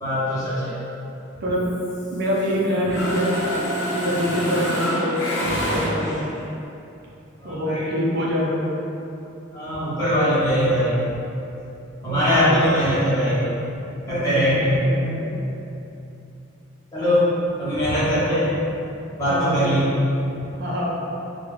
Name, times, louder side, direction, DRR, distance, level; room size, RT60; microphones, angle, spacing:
voice 1, 0.0-0.9 7.4-7.8 9.5-10.9 12.0-13.4 14.1-14.8 16.9-17.3 17.6-18.5 19.2-19.9, equal, 15° left, -13 dB, 0.9 m, -21 dB
Mechanisms, 1.6-2.5 2.8-6.4, equal, 60° left, 0.7 m, -27 dB
voice 2, 2.1-3.4 3.8-6.3 7.4-8.6 12.0-12.6 14.1-15.3 19.2-19.7 20.5-20.9, equal, 55° right, -5 dB, 0.6 m, -25 dB
3.5 x 2.2 x 3.2 m, 2.7 s
head